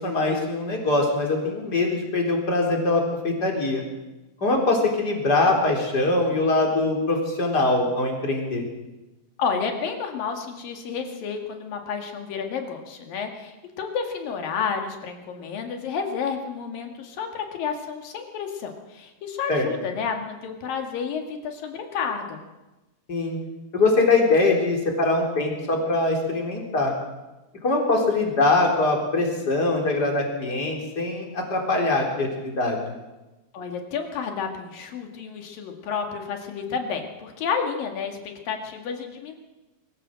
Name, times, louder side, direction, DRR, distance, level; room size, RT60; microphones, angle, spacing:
voice 1, 0.0-3.8 4.4-8.6 19.5-19.7 23.1-23.4 23.7-26.9 27.6-32.8, left 2 dB, 30° left, 1 dB, 4.1 m, -22 dB
voice 2, 9.4-22.4 33.5-39.4, left 6 dB, 75° left, 4 dB, 3.8 m, -30 dB
23.5 x 15.5 x 7.6 m, 1.1 s
omnidirectional pair, 4.0 m